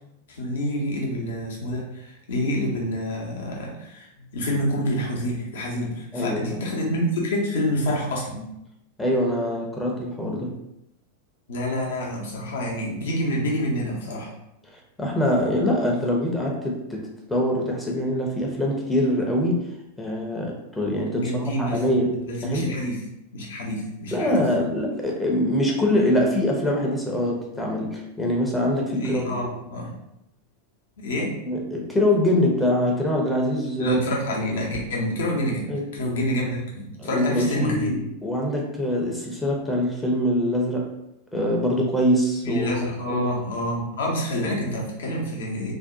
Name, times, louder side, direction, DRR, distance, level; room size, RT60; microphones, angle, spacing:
voice 1, 0.3-4.1 4.3-8.5 11.5-14.3 21.1-21.8 22.2-23.0 23.3-24.4 28.9-29.9 31.0-31.4 33.8-35.7 35.9-37.9 42.4-45.7, equal, 60° left, -2 dB, 0.7 m, -27 dB
voice 2, 6.1-6.6 9.0-10.6 15.0-19.7 20.0-22.2 22.4-22.7 24.1-29.3 31.4-34.0 35.7-35.9 37.0-40.9 41.3-43.3, left 1 dB, 10° left, -1 dB, 0.5 m, -24 dB
2.6 x 2.1 x 2.5 m, 0.84 s
figure-of-eight pair, 90°, 0 cm